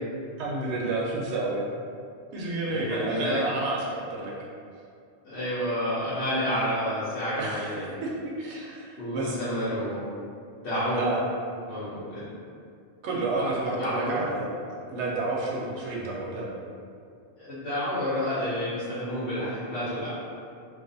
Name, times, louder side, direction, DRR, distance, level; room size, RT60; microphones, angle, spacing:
voice 1, 0.4-1.6 2.3-4.3 7.4-9.4 11.0-11.2 13.0-14.5 14.9-16.5, right 2 dB, 80° right, -4 dB, 0.9 m, -30 dB
voice 2, 2.7-3.4 5.2-7.9 9.0-10.1 10.6-11.0 11.7-12.3 13.4-13.5 13.8-14.1 17.4-20.1, equal, 80° left, -12 dB, 1.0 m, -30 dB
2.5 x 2.3 x 2.5 m, 2.3 s
omnidirectional pair, 1.1 m